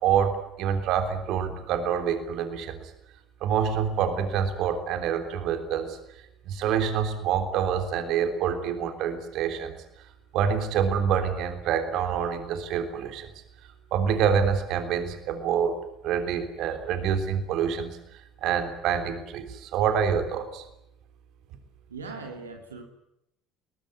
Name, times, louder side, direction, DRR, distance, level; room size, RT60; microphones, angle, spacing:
voice 1, 0.0-2.9 3.4-6.0 6.5-9.8 10.3-13.3 13.9-15.8 16.0-18.0 18.4-20.6, right 7 dB, 55° right, 7 dB, 3.4 m, -26 dB
voice 2, 21.9-22.8, right 4 dB, 80° right, 4 dB, 3.0 m, -39 dB
22.0 x 21.0 x 9.7 m, 0.80 s
figure-of-eight pair, 60°, 0 cm